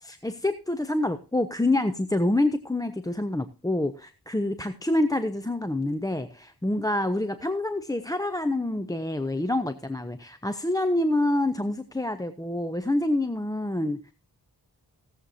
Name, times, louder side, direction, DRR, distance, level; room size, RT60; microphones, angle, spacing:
voice 1, 0.0-14.1, left 1 dB, 10° left, 10 dB, 0.7 m, -27 dB
18.0 x 7.7 x 2.8 m, 0.33 s
cardioid pair, 50°, 41 cm